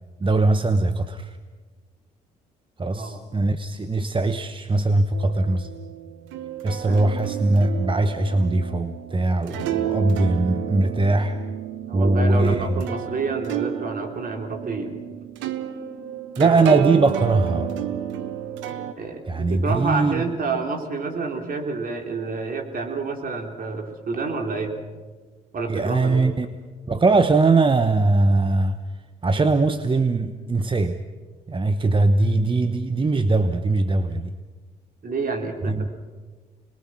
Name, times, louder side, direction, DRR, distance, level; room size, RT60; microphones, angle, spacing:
voice 1, 0.2-1.4 2.8-5.7 6.6-11.4 11.9-12.7 16.4-17.7 19.3-20.3 25.7-26.5 26.9-28.8 29.2-31.0 31.5-34.3 35.7-35.9, right 2 dB, 25° right, 9 dB, 1.1 m, -21 dB
sound 1, 5.1-18.9, right 10 dB, 80° right, 1.2 m, -31 dB
voice 2, 11.9-14.9 19.0-24.8 25.5-26.3 35.0-35.9, right 4 dB, 50° right, 3 dB, 3.8 m, -28 dB
26.5 x 21.0 x 6.2 m, 1.4 s
hypercardioid pair, 55°, 19 cm